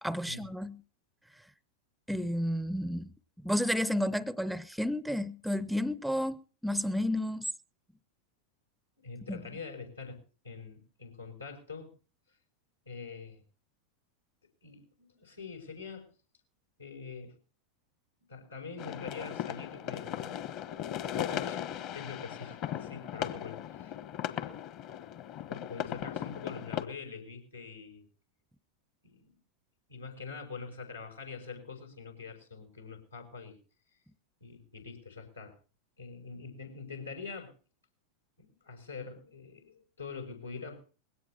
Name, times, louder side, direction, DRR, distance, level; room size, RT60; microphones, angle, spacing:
voice 1, 0.0-0.8 2.1-3.1 3.4-7.5 9.3-9.4, left 1 dB, ahead, 0.6 m, -31 dB
voice 2, 9.0-10.2 10.4-11.9 12.9-13.4 14.6-16.1 16.8-17.4 18.3-20.4 21.2-23.9 24.2-24.6 25.5-28.1 29.0-29.4 29.9-33.6 34.4-35.6 36.0-37.5 38.4-40.8, left 5 dB, 85° left, 5.7 m, -44 dB
sound 1, 18.8-26.8, left 10 dB, 40° left, 1.4 m, -37 dB
21.0 x 17.0 x 2.9 m
figure-of-eight pair, 90°, 0 cm